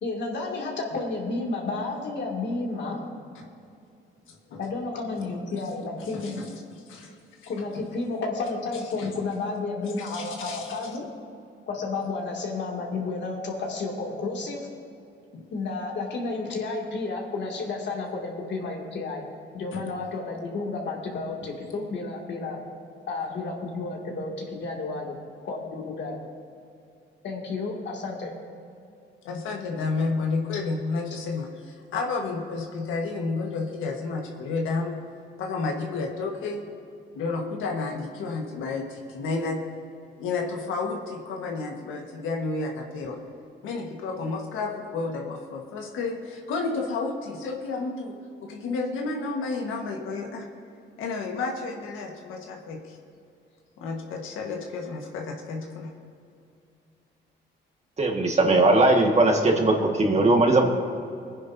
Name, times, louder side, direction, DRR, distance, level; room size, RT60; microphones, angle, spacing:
voice 1, 0.0-3.0 4.6-6.4 7.5-11.0 11.7-14.7 15.5-19.2 19.5-22.6 23.1-25.2 25.4-26.2 27.2-28.3, left 3 dB, 65° left, -1 dB, 2.5 m, -31 dB
voice 2, 4.3-4.6 5.2-5.3 6.0-7.1 7.4-7.5 9.0-9.1 10.0-10.7 15.3-15.4 19.7-19.8 29.2-35.0 35.4-36.6 37.1-39.6 40.2-43.2 43.6-48.1 48.4-50.5 51.0-53.0 53.8-55.9, left 3 dB, 85° left, 1 dB, 1.6 m, -31 dB
voice 3, 58.0-60.6, right 2 dB, 35° right, 1 dB, 1.8 m, -19 dB
21.5 x 10.0 x 2.8 m, 2.5 s
cardioid pair, 90°, 20 cm